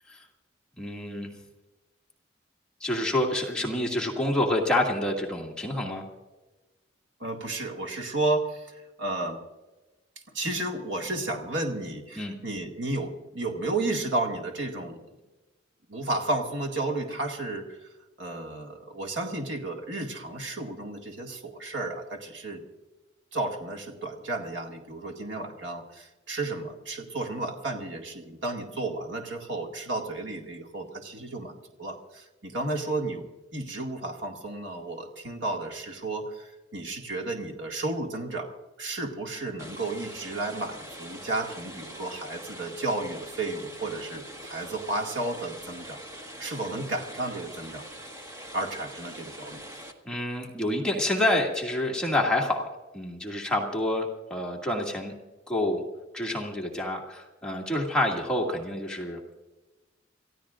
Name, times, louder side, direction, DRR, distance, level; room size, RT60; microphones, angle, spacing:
voice 1, 0.8-1.3 2.8-6.0 12.2-12.4 50.0-55.1 55.5-55.8 56.1-59.2, left 1 dB, 5° left, -1 dB, 2.1 m, -28 dB
voice 2, 7.2-9.4 10.3-15.0 15.9-17.9 18.2-22.6 23.3-33.2 33.5-47.9 48.5-49.6, right 2 dB, 75° right, 2 dB, 2.1 m, -32 dB
sound 1, 39.6-49.9, equal, 15° right, 1.5 m, -43 dB
28.5 x 15.0 x 2.5 m, 1.1 s
head